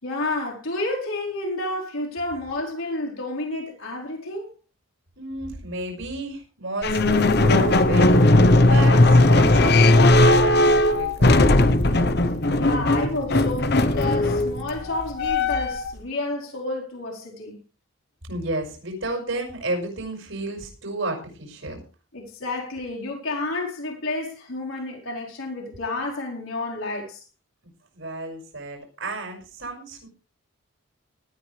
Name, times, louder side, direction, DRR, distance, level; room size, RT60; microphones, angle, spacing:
voice 1, 0.0-4.5 12.6-17.6 22.1-27.2, left 2 dB, 85° left, 4.7 m, -30 dB
voice 2, 5.2-12.0 18.2-21.8 27.6-30.1, right 2 dB, 70° right, 5.9 m, -32 dB
sound 1, 6.8-15.9, left 2 dB, 50° left, 1.0 m, -17 dB
18.5 x 13.0 x 3.4 m
head